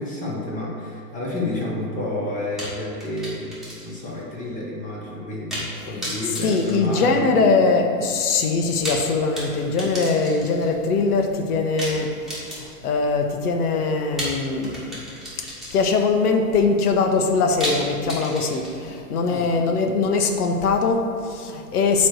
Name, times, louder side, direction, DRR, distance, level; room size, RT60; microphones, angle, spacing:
voice 1, 0.0-3.6 3.8-7.5 19.2-19.5, left 1 dB, 15° left, -4 dB, 1.1 m, -30 dB
sound 1, 2.6-4.1 4.4-4.5 5.5-5.7 6.0-7.5 8.6-10.7 11.8-13.0 14.2-16.1 17.6-19.0, equal, ahead, 1.5 m, -33 dB
voice 2, 6.4-15.0 15.7-22.1, left 4 dB, 70° left, 4 dB, 1.1 m, -22 dB
8.7 x 3.2 x 6.4 m, 2.7 s
hypercardioid pair, 145°, 47 cm